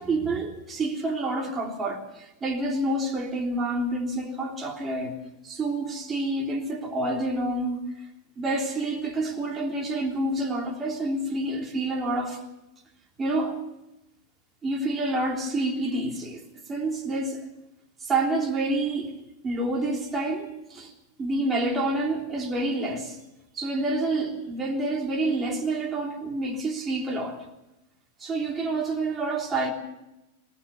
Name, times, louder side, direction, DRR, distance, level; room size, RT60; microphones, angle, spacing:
voice 1, 0.0-5.2 5.4-7.8 8.4-12.4 13.2-13.6 14.6-16.4 16.7-17.4 18.0-20.9 21.2-23.2 23.5-27.4 28.2-29.7, right 2 dB, 20° right, 2 dB, 3.3 m, -28 dB
20.0 x 19.0 x 7.0 m, 0.94 s
figure-of-eight pair, 90°, 0 cm